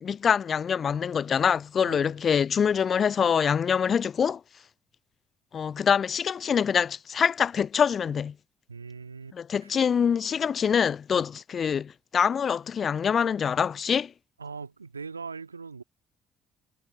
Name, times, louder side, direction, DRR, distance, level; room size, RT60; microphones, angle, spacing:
voice 1, 0.0-4.4 5.5-8.3 9.3-14.1, left 7 dB, 45° left, 0.3 m, -25 dB
voice 2, 8.7-9.8 14.4-15.8, right 5 dB, 90° right, 2.1 m, -41 dB
figure-of-eight pair, 50°, 0 cm